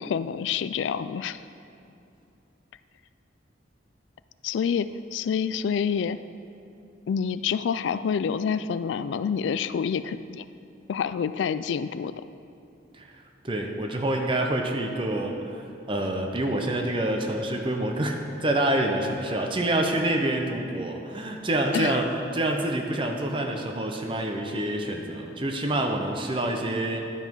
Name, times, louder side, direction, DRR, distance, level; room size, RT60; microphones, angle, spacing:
voice 1, 0.0-1.4 4.4-6.2 7.1-10.5 10.9-12.2 21.7-22.0, left 7 dB, 80° left, 14 dB, 0.3 m, -27 dB
voice 2, 13.4-22.1 22.3-27.0, right 1 dB, 30° right, 3 dB, 0.6 m, -27 dB
11.5 x 5.6 x 4.6 m, 2.6 s
head